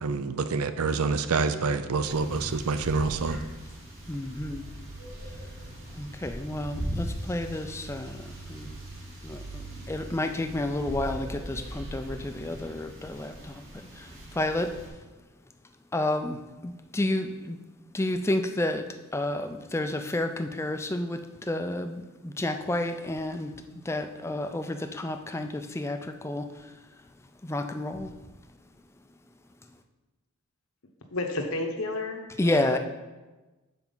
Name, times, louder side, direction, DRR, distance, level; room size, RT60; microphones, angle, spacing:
voice 1, 0.0-3.4, right 4 dB, 75° right, 11 dB, 0.5 m, -27 dB
sound 1, 2.0-14.9, right 1 dB, 60° right, 2.3 m, -40 dB
voice 2, 4.1-4.7 6.0-8.8 9.2-14.7 15.9-17.6 17.9-18.8 19.1-23.5 23.8-26.7 27.4-28.1 32.4-32.8, left 1 dB, 10° left, 7 dB, 0.4 m, -31 dB
voice 3, 31.1-32.8, left 2 dB, 70° left, 4 dB, 1.0 m, -32 dB
7.0 x 4.6 x 5.5 m, 1.2 s
head